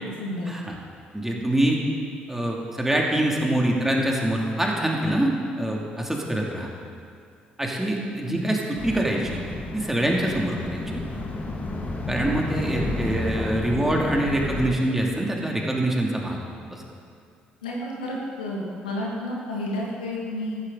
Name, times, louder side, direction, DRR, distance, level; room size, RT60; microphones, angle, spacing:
voice 1, 0.0-0.5 8.3-8.5 17.6-20.6, left 1 dB, 85° left, -3 dB, 2.1 m, -31 dB
voice 2, 1.1-1.8 2.3-6.7 7.6-9.4 9.7-11.0 12.1-16.4 16.7-16.8, right 1 dB, 10° right, -1 dB, 2.6 m, -25 dB
sound 1, 8.8-14.7, left 2 dB, 35° left, 2.0 m, -31 dB
14.5 x 13.0 x 4.0 m, 2.4 s
figure-of-eight pair, 50°, 4 cm